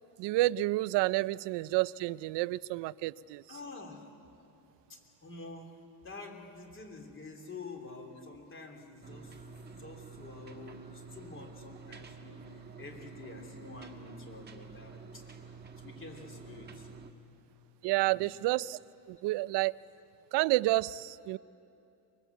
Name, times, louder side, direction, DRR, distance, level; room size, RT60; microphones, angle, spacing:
voice 1, 0.2-3.4 17.8-18.8 19.1-19.7 20.3-21.4, right 18 dB, 70° right, 19 dB, 0.5 m, -29 dB
voice 2, 3.5-4.1 4.9-5.7 6.0-16.9 18.0-18.3, left 3 dB, 25° left, 3 dB, 3.1 m, -48 dB
sound 1, 9.0-17.1, right 5 dB, 20° right, 1.4 m, -49 dB
23.5 x 22.0 x 8.2 m, 2.8 s
cardioid pair, 155°, 44 cm